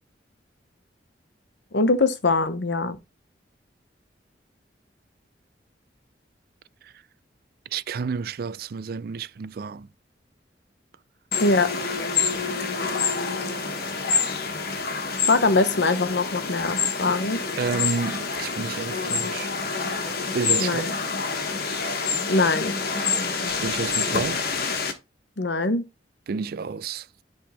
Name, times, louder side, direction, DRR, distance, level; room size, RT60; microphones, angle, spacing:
voice 1, 1.7-3.0 11.4-11.7 15.3-17.4 20.6-20.9 22.3-22.8 25.4-25.8, left 3 dB, 85° left, 0.9 m, -22 dB
voice 2, 7.7-9.9 17.1-19.5 20.3-20.9 23.6-24.4 26.3-27.1, right 5 dB, 60° right, 0.4 m, -30 dB
sound 1, 11.3-24.9, left 5 dB, 60° left, 1.3 m, -27 dB
10.5 x 3.5 x 4.2 m
head